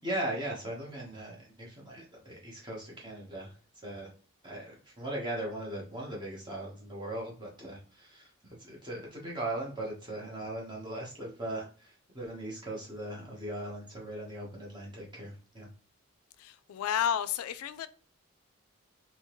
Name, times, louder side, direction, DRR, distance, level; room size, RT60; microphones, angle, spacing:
voice 1, 0.0-3.5 3.8-4.1 4.4-15.7, right 1 dB, 20° right, 1.0 m, -39 dB
voice 2, 16.4-17.9, left 9 dB, 85° left, 0.3 m, -31 dB
3.5 x 2.9 x 3.0 m
head